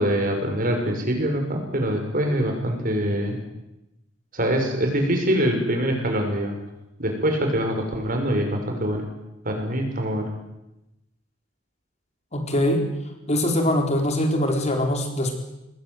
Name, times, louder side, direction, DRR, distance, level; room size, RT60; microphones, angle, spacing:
voice 1, 0.0-3.4 4.3-6.6 7.0-9.0 9.4-10.3, equal, 45° right, 4 dB, 6.1 m, -24 dB
voice 2, 12.3-12.8 13.3-15.3, left 1 dB, 35° left, 3 dB, 4.4 m, -22 dB
26.5 x 20.5 x 8.1 m, 0.92 s
head